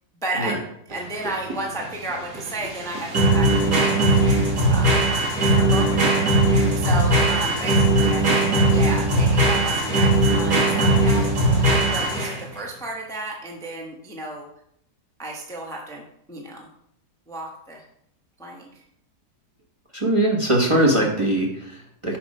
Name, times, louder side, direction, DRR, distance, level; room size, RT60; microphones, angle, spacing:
voice 1, 0.2-0.6 0.9-4.3 4.7-5.0 5.4-6.3 6.8-11.3 11.9-14.5 15.2-16.7 17.3-17.8 18.4-18.7, right 2 dB, 5° left, -1 dB, 0.9 m, -33 dB
sound 1, 0.9-12.5, right 1 dB, 75° right, 2.6 m, -19 dB
voice 2, 19.9-22.2, right 1 dB, 20° right, -1 dB, 1.1 m, -21 dB
6.0 x 5.2 x 5.4 m, 0.73 s
omnidirectional pair, 1.7 m